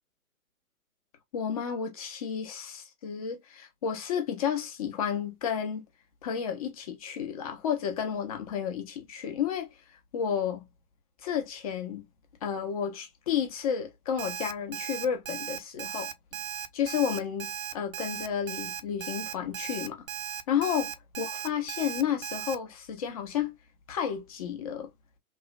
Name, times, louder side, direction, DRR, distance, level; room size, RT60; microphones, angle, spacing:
voice 1, 1.3-5.8 6.2-9.7 10.1-10.6 11.2-12.1 12.4-16.1 16.7-20.0 20.5-20.9 21.2-23.5 23.9-24.9, left 8 dB, 25° left, 0.5 m, -31 dB
Alarm, 14.2-22.6, right 10 dB, 75° right, 0.6 m, -37 dB
3.0 x 2.1 x 2.2 m
figure-of-eight pair, 120°, 42 cm